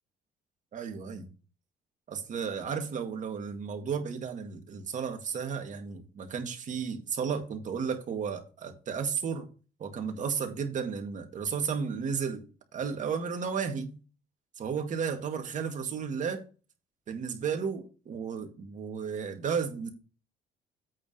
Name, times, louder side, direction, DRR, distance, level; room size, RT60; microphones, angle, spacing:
voice 1, 0.7-1.3 2.1-9.5 9.8-12.5 12.7-13.9 14.6-16.4 17.1-19.9, right 6 dB, 45° right, 2.0 m, -33 dB
8.6 x 3.6 x 6.7 m
cardioid pair, 110°, 17 cm